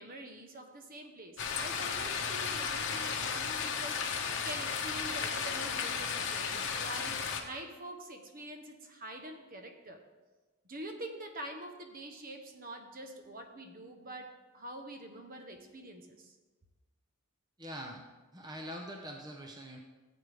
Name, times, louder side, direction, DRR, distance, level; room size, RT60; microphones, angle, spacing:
voice 1, 0.0-4.0 4.4-10.0 10.7-16.3, right 1 dB, 40° right, 5 dB, 1.0 m, -45 dB
sound 1, 1.4-7.4, left 6 dB, 55° left, 1.1 m, -34 dB
voice 2, 17.6-18.0 18.3-19.8, equal, 20° right, 2 dB, 0.8 m, -43 dB
14.5 x 8.1 x 3.5 m, 1.2 s
head